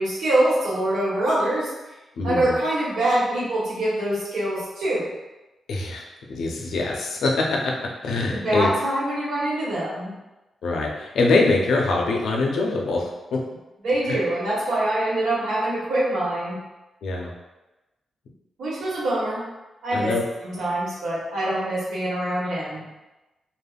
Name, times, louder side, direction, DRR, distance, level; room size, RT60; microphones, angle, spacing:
voice 1, 0.0-1.7 2.2-5.1 8.3-10.1 13.8-16.6 18.6-19.4 19.8-20.1 20.4-22.9, right 1 dB, 80° right, -7 dB, 1.0 m, -24 dB
voice 2, 2.1-2.5 5.7-8.7 10.6-13.4 14.1-14.2 17.0-17.3 19.9-20.2, left 3 dB, 85° left, 0 dB, 0.5 m, -24 dB
3.4 x 2.1 x 2.3 m, 1.0 s
wide cardioid pair, 170°, 0 cm